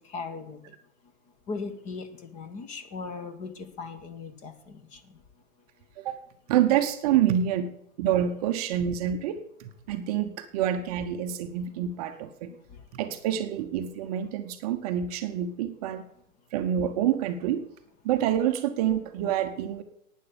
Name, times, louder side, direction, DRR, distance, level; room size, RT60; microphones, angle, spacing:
voice 1, 0.1-0.6 1.5-5.0, left 4 dB, 20° left, 10 dB, 1.0 m, -38 dB
voice 2, 6.5-7.7 8.0-12.5 12.9-16.0 16.5-17.6 18.0-19.8, right 10 dB, 30° right, 8 dB, 0.9 m, -27 dB
11.5 x 9.3 x 6.9 m, 0.75 s
figure-of-eight pair, 120°, 42 cm